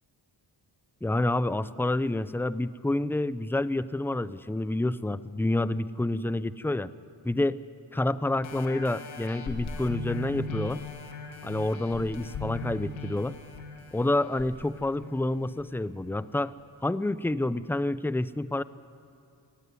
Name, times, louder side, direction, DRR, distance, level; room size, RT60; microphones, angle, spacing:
voice 1, 1.0-6.9 7.2-7.6 7.9-10.8 11.4-13.4 13.9-16.5 16.8-18.6, left 2 dB, 5° left, 16 dB, 0.5 m, -28 dB
sound 1, 8.4-15.6 16.2-16.3, left 3 dB, 90° left, 2.0 m, -39 dB
18.5 x 15.0 x 9.5 m, 2.5 s
cardioid pair, 70°, 46 cm